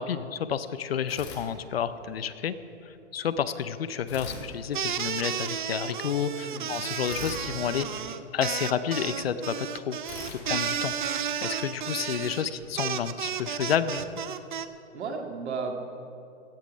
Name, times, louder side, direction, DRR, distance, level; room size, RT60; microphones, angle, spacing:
voice 1, 0.0-2.6 2.8-7.9 8.3-10.0 10.3-14.0, left 8 dB, 55° left, 13 dB, 0.6 m, -30 dB
sound 1, 1.1-2.2 4.1-5.5 7.1-8.8 10.0-11.6, left 4 dB, 25° left, 1.6 m, -44 dB
sound 2, 4.7-14.7, right 8 dB, 40° right, 0.5 m, -32 dB
voice 2, 6.4-6.7 14.9-15.8, right 5 dB, 60° right, 4 dB, 1.9 m, -34 dB
16.5 x 10.5 x 5.3 m, 2.7 s
hypercardioid pair, 165°, 37 cm